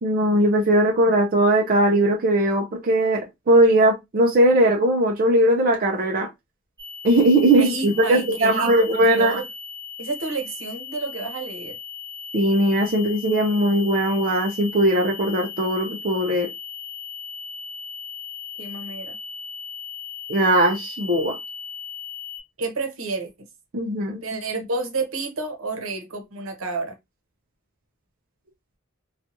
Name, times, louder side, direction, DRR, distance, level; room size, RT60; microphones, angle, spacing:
voice 1, 0.0-6.3 7.0-9.4 12.3-16.5 20.3-21.4 23.7-24.2, right 1 dB, 45° right, 0.5 m, -19 dB
sound 1, 6.8-22.4, left 5 dB, 15° right, 1.2 m, -37 dB
voice 2, 7.5-8.7 9.0-9.4 10.0-11.8 18.6-19.2 22.6-23.3 24.2-26.9, right 3 dB, 75° right, 0.9 m, -30 dB
2.8 x 2.4 x 2.5 m
head